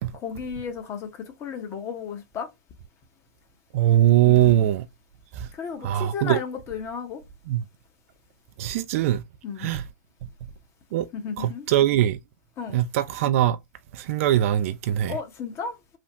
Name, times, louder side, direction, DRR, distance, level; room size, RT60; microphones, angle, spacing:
voice 1, 0.2-1.1 1.4-2.5 4.2-4.7 5.6-7.2 9.4-9.7 11.1-11.7 12.6-12.8 15.1-16.0, left 6 dB, 30° left, 0.8 m, -33 dB
voice 2, 3.7-4.9 5.4-5.5 5.8-6.4 7.5-7.6 8.6-9.2 9.6-9.8 10.9-11.1 11.4-12.2 12.7-13.6 13.9-15.2, right 12 dB, 50° right, 0.3 m, -21 dB
3.3 x 2.0 x 2.7 m
hypercardioid pair, 115°, 9 cm